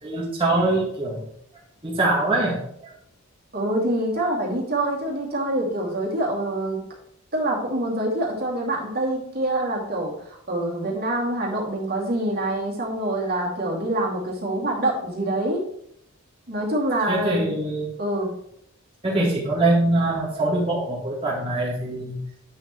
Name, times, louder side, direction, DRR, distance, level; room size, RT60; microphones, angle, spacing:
voice 1, 0.0-1.2 1.8-2.9 17.1-17.9 19.0-22.2, right 2 dB, 25° right, -5 dB, 2.0 m, -23 dB
voice 2, 3.5-6.8 7.3-15.6 16.5-17.5 18.0-18.3, right 1 dB, 45° right, -2 dB, 2.5 m, -25 dB
8.8 x 6.4 x 3.1 m, 0.71 s
head